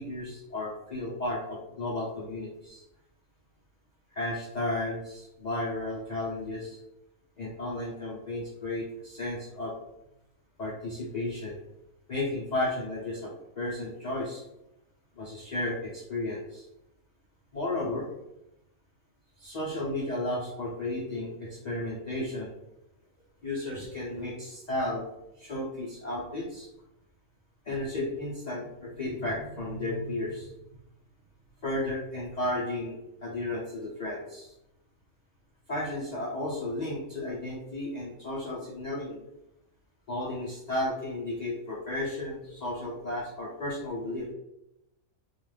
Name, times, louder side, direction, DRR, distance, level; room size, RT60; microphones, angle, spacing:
voice 1, 0.0-2.8 4.1-6.8 7.4-9.7 10.6-11.6 12.1-14.4 15.2-16.6 17.5-18.1 19.4-22.5 23.4-25.0 25.4-26.7 27.6-30.5 31.6-34.5 35.7-39.2 40.1-44.3, left 1 dB, 70° left, -6 dB, 0.4 m, -33 dB
2.4 x 2.3 x 3.2 m, 0.87 s
omnidirectional pair, 1.5 m